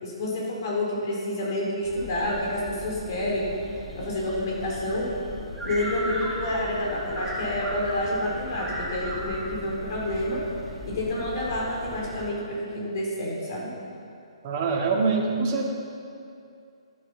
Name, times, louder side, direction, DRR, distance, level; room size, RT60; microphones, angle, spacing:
voice 1, 0.0-3.5 3.9-5.1 5.6-10.4 10.9-13.7, left 1 dB, 40° left, -3 dB, 4.0 m, -29 dB
sound 1, 1.8-12.3, equal, ahead, 1.8 m, -37 dB
voice 2, 14.4-15.7, right 4 dB, 30° right, 0 dB, 1.9 m, -24 dB
12.0 x 11.5 x 5.8 m, 2.5 s
figure-of-eight pair, 130°, 3 cm